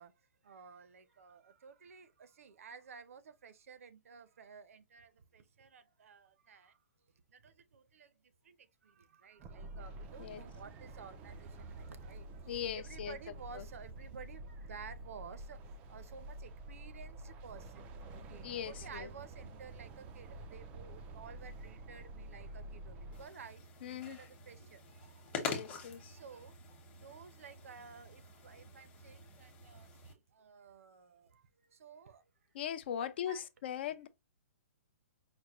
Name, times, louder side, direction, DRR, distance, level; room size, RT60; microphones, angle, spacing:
voice 1, 0.0-6.8 7.3-26.5 26.9-32.6 33.0-33.5, right 6 dB, 65° right, 0.6 m, -54 dB
sound 1, 9.4-23.3, right 1 dB, 15° right, 0.3 m, -49 dB
voice 2, 12.5-13.2 13.5-13.6 18.4-19.1 23.8-24.2 25.4-26.2 32.5-34.1, left 9 dB, 45° left, 0.4 m, -40 dB
sound 2, 23.1-30.1, left 5 dB, 20° left, 0.9 m, -46 dB
5.0 x 2.1 x 2.9 m
hypercardioid pair, 160°, 8 cm